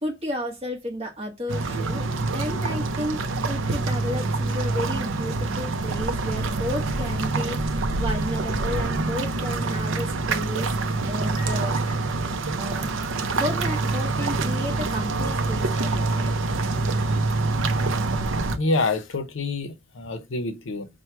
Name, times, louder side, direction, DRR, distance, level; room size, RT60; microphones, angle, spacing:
voice 1, 0.0-10.7 11.1-11.8 12.5-16.4, equal, 30° right, 1.1 m, -33 dB
sound 1, 1.5-18.6, right 3 dB, 65° right, 0.5 m, -26 dB
voice 2, 18.5-20.9, left 3 dB, 65° left, 0.6 m, -27 dB
4.5 x 2.1 x 4.4 m
head